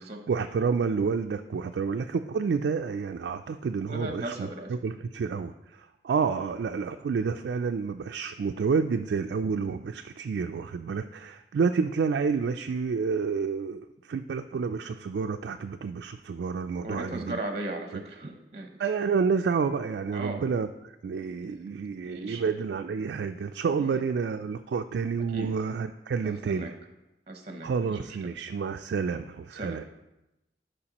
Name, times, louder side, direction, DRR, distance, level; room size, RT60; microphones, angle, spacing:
voice 1, 0.0-17.4 17.9-18.0 18.8-20.7 21.0-26.7 27.6-29.8, right 5 dB, 65° right, 6 dB, 0.3 m, -29 dB
voice 2, 3.9-4.7 16.8-18.7 20.1-20.4 22.0-22.5 23.8-24.0 25.3-25.6 26.2-26.7 27.3-28.0 29.5-29.8, right 1 dB, 35° right, 4 dB, 0.7 m, -37 dB
12.5 x 5.1 x 2.9 m, 0.94 s
head